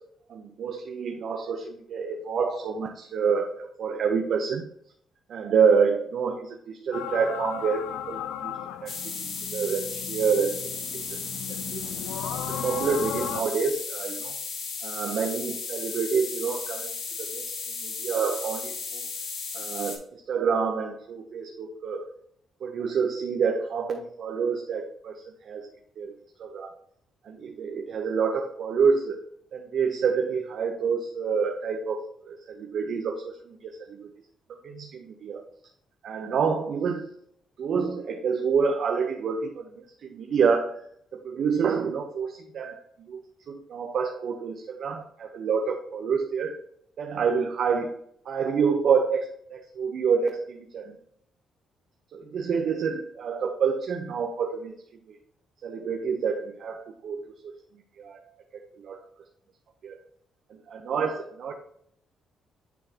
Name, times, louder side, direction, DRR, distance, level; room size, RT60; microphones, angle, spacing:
voice 1, 0.3-4.6 5.3-8.5 8.8-8.9 9.2-10.6 10.9-11.0 11.7-11.8 12.4-14.4 14.8-16.9 17.2-17.6 17.8-19.0 19.5-22.1 22.6-25.7 26.0-26.1 26.4-26.7 27.2-29.2 29.5-34.1 34.6-35.5 36.0-37.1 37.6-39.8 40.1-40.8 41.1-42.8 43.1-43.2 43.5-46.6 47.0-48.0 48.3-49.2 49.5-51.0 52.1-54.7 55.1-55.2 55.6-57.5 58.0-58.2 58.8-59.0 59.8-60.0 60.7-61.5, right 6 dB, 65° right, 3 dB, 0.7 m, -27 dB
sound 1, 6.9-13.4, left 9 dB, 90° left, 0.4 m, -36 dB
sound 2, 8.9-20.0, left 5 dB, 65° left, 1.6 m, -35 dB
9.2 x 3.9 x 2.8 m, 0.67 s
cardioid pair, 90°, 0 cm